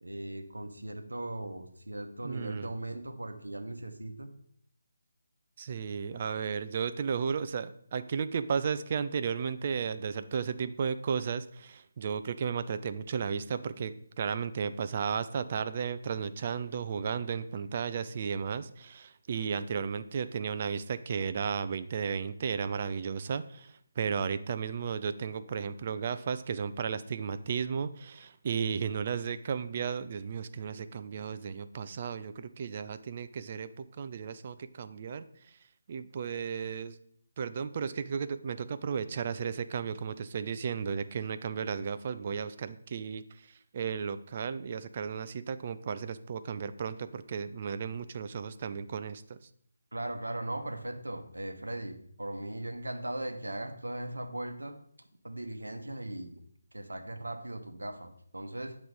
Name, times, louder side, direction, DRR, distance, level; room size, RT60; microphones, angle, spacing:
voice 1, 0.0-4.3 49.9-54.8 55.2-56.4 56.7-58.8, right 1 dB, 70° right, 6 dB, 0.9 m, -38 dB
voice 2, 2.2-2.7 5.6-35.2 35.9-37.0 37.4-43.2 43.7-49.4, right 6 dB, 35° right, 12 dB, 0.3 m, -34 dB
7.9 x 3.1 x 5.2 m, 0.68 s
figure-of-eight pair, 150°, 0 cm